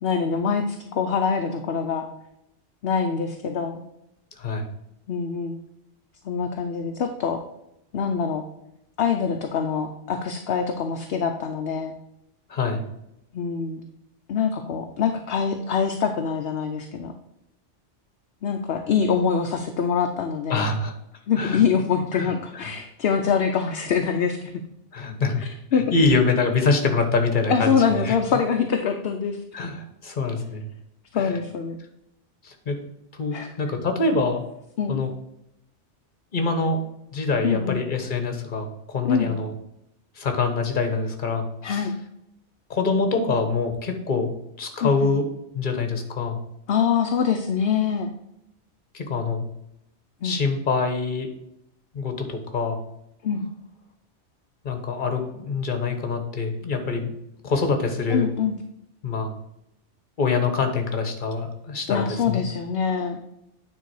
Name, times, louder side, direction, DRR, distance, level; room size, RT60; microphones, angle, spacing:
voice 1, 0.0-2.1 2.8-3.8 5.1-5.6 6.2-7.4 7.9-8.4 9.0-11.9 13.3-13.8 14.3-17.1 18.4-20.7 21.3-24.6 25.4-25.8 27.5-29.4 31.1-31.8 33.3-33.5 34.8-35.0 37.4-37.8 39.0-39.3 41.6-41.9 44.8-45.1 46.7-48.1 50.2-50.4 53.2-53.4 58.1-58.6 61.9-63.2, left 6 dB, 65° left, 4 dB, 0.8 m, -24 dB
voice 2, 12.5-12.8 20.5-20.9 21.4-21.6 22.1-22.3 22.6-22.7 24.9-25.4 25.7-27.7 28.0-28.2 29.5-30.7 31.2-31.3 32.4-32.8 33.1-34.4 34.9-35.1 36.3-36.8 37.1-39.5 40.2-41.9 42.7-44.3 44.6-45.3 45.5-46.4 48.9-49.4 50.2-51.3 51.9-52.8 54.6-57.1 57.4-58.3 59.0-59.3 60.2-62.4, left 4 dB, 45° left, 6 dB, 1.2 m, -25 dB
9.3 x 3.7 x 4.7 m, 0.81 s
omnidirectional pair, 1.2 m